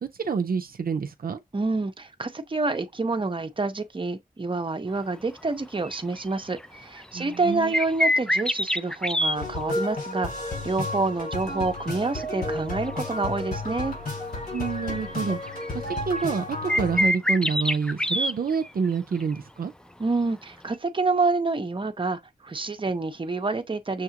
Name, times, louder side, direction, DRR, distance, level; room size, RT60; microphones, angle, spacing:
voice 1, 0.0-1.4 7.1-7.7 14.5-15.4 15.7-19.7, right 5 dB, 75° right, 0.4 m, -28 dB
voice 2, 1.5-13.9 20.0-24.0, right 3 dB, 35° right, 0.6 m, -28 dB
sound 1, 5.8-6.2 6.6-9.4 11.4-12.6 13.0-13.1 14.6-14.7 15.2-16.4 16.7-18.9 19.2-19.3 20.7-20.8, left 1 dB, 5° left, 0.3 m, -25 dB
sound 2, 9.4-17.1, left 2 dB, 85° left, 3.4 m, -32 dB
6.4 x 2.4 x 2.8 m
wide cardioid pair, 75°, 15 cm